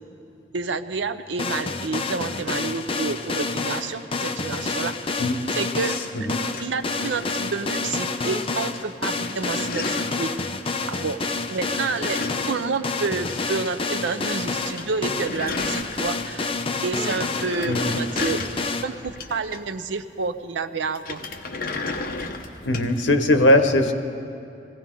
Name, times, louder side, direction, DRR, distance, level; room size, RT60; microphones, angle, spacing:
voice 1, 0.5-5.0 5.5-6.0 6.6-10.6 10.9-11.2 11.5-12.2 12.5-16.5 16.8-18.4 18.8-21.2, right 4 dB, 90° right, 11 dB, 0.6 m, -29 dB
sound 1, 1.4-18.8, left 3 dB, 30° left, 0.6 m, -28 dB
sound 2, 5.8-7.9 8.2-8.8 9.1-10.3 11.5-13.7 13.9-14.0 14.3-14.4 14.6-16.4 16.7-19.8 20.9-23.0, left 3 dB, 55° left, 0.9 m, -34 dB
voice 2, 17.7-18.0 22.6-23.9, left 1 dB, 90° left, 7 dB, 0.9 m, -19 dB
21.0 x 16.5 x 3.8 m, 2.6 s
head